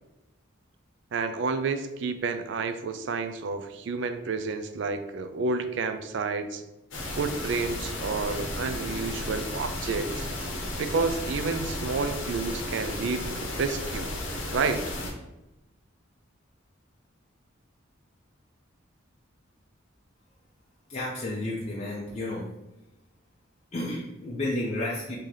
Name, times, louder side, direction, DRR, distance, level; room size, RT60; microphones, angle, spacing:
voice 1, 1.1-6.6 7.2-10.3 10.8-14.1 14.5-14.8, right 4 dB, 65° right, 9 dB, 0.4 m, -30 dB
sound 1, 6.9-15.1, left 1 dB, 70° left, 0.8 m, -34 dB
voice 2, 20.9-22.5 23.7-25.2, left 1 dB, 35° left, -5 dB, 0.5 m, -31 dB
3.7 x 2.8 x 3.2 m, 0.96 s
head